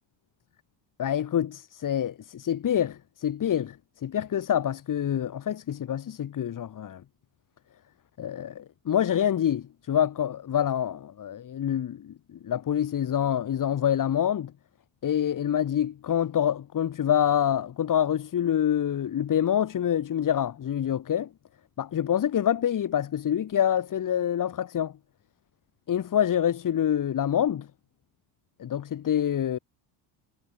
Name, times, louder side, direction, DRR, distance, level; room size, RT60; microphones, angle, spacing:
voice 1, 1.0-7.0 8.2-14.5 15.0-21.3 21.8-24.9 25.9-27.7 28.6-29.6, left 10 dB, 45° left, 7.8 m, -26 dB
cardioid pair, 115°, 44 cm